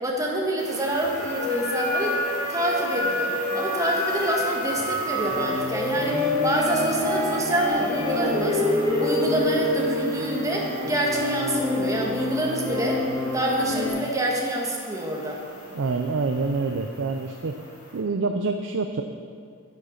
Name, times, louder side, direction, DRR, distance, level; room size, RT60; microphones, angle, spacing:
voice 1, 0.0-2.2 2.5-8.6 9.0-13.0 13.3-15.4, right 1 dB, 15° right, -1 dB, 1.6 m, -27 dB
sound 1, 0.6-18.0, left 1 dB, 70° left, 2.8 m, -33 dB
sound 2, 5.3-13.9, left 2 dB, 15° left, 3.5 m, -26 dB
voice 2, 15.7-17.6 17.9-19.0, right 4 dB, 60° right, 6 dB, 0.5 m, -26 dB
9.3 x 8.7 x 6.6 m, 2.2 s
head